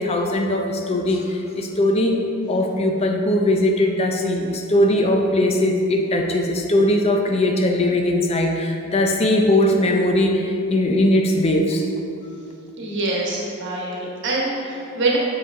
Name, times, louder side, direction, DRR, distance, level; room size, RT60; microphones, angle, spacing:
voice 1, 0.0-2.2 2.5-11.9, left 1 dB, 30° left, 2 dB, 0.4 m, -20 dB
voice 2, 12.8-15.2, right 2 dB, 55° right, -3 dB, 1.2 m, -24 dB
6.6 x 4.9 x 3.6 m, 2.6 s
head